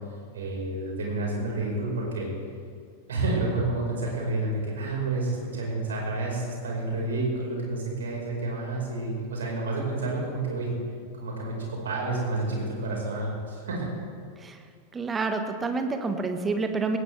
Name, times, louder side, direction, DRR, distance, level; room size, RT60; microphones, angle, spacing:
voice 1, 0.3-2.3 3.1-10.7 11.1-13.9, right 2 dB, 65° right, -2 dB, 4.9 m, -29 dB
voice 2, 14.9-17.0, right 3 dB, 15° right, 7 dB, 1.4 m, -28 dB
19.5 x 17.5 x 3.4 m, 2.2 s
figure-of-eight pair, 90°, 0 cm